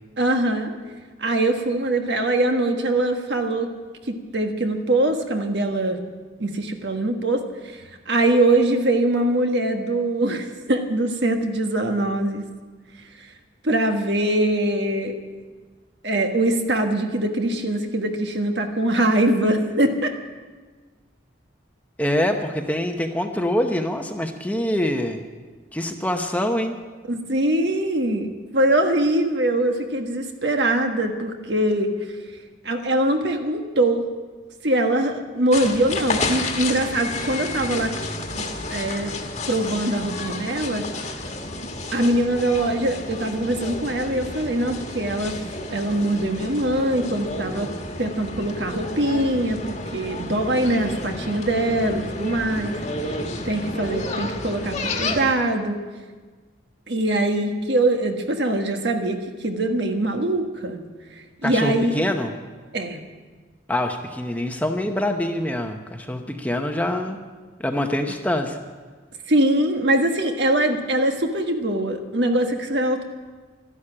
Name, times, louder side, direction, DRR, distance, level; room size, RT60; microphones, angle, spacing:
voice 1, 0.2-0.7 1.2-3.7 4.1-6.0 6.4-12.4 13.2-13.3 13.6-15.2 16.0-20.1 27.1-31.9 32.6-34.1 34.6-37.9 38.3-39.2 39.5-40.9 41.9-45.4 45.7-47.7 48.0-52.8 53.1-55.8 56.9-60.8 61.2-61.9 62.7-63.0 69.3-73.0, right 1 dB, 65° right, 5 dB, 1.4 m, -22 dB
voice 2, 22.0-25.2 25.7-26.8 61.4-62.3 63.7-67.2 67.6-68.6, left 1 dB, 10° left, 4 dB, 0.8 m, -25 dB
sound 1, 35.5-55.3, left 2 dB, 35° left, 1.4 m, -31 dB
12.5 x 11.5 x 8.7 m, 1.4 s
head